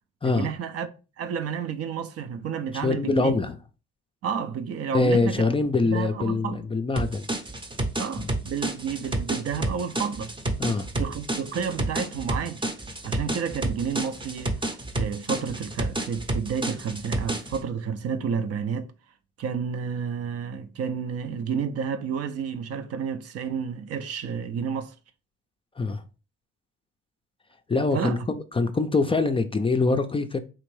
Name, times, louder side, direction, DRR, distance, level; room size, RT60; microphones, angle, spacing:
voice 1, 0.2-0.9 1.2-3.4 4.2-5.5 5.9-6.7 8.0-10.3 10.9-12.6 13.0-18.9 19.4-24.9 27.9-28.3, right 7 dB, 55° right, 0.5 m, -31 dB
voice 2, 2.8-3.6 4.9-7.3 10.6-10.9 25.8-26.0 27.7-28.2 28.5-30.4, left 3 dB, 20° left, 0.4 m, -24 dB
sound 1, 7.0-17.6, right 1 dB, 15° right, 0.7 m, -30 dB
3.6 x 2.5 x 3.1 m
supercardioid pair, 60°, 30 cm